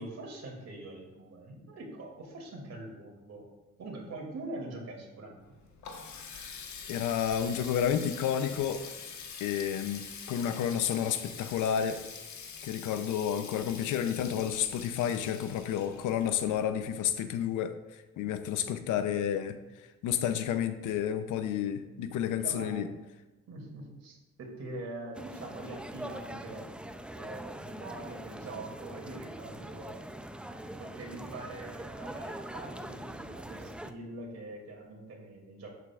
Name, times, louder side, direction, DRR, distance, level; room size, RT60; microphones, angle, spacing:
voice 1, 0.0-3.5 3.8-5.5 22.4-22.9 23.5-26.7 27.1-30.0 30.6-35.7, right 2 dB, 60° right, 0 dB, 2.7 m, -43 dB
Water tap faucet, 5.4-17.1, left 6 dB, 70° left, 1.3 m, -45 dB
voice 2, 6.9-8.8 9.4-10.0 10.3-12.0 12.6-19.6 20.0-22.9, left 9 dB, 85° left, 10 dB, 0.7 m, -30 dB
sound 1, 25.1-33.9, right 1 dB, 5° right, 0.5 m, -43 dB
11.0 x 8.2 x 2.5 m, 1.1 s
cardioid pair, 90°, 30 cm